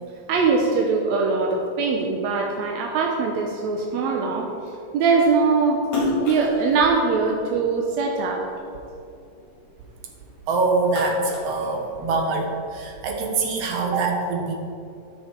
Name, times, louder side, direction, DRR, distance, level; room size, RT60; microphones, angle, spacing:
voice 1, 0.3-4.5 4.9-5.8 6.3-8.5, right 4 dB, 80° right, 1 dB, 1.6 m, -22 dB
Splash splatter, 5.8-8.4 8.9-10.3 10.6-12.4, left 3 dB, 55° left, 3.0 m, -30 dB
voice 2, 10.5-14.6, right 3 dB, 60° right, 2 dB, 1.8 m, -24 dB
13.5 x 6.5 x 4.5 m, 2.6 s
omnidirectional pair, 4.1 m